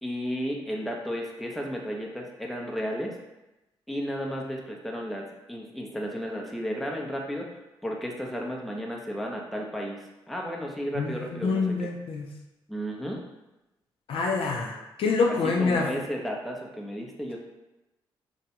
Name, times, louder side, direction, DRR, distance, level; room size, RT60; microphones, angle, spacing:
voice 1, 0.0-3.2 3.9-7.5 7.8-10.0 10.3-11.9 12.7-13.2 15.6-17.4, equal, ahead, -1 dB, 0.5 m, -33 dB
voice 2, 11.4-12.3 14.1-15.9, left 4 dB, 60° left, 1 dB, 0.4 m, -26 dB
2.2 x 2.1 x 2.8 m, 0.97 s
supercardioid pair, 55°, 10 cm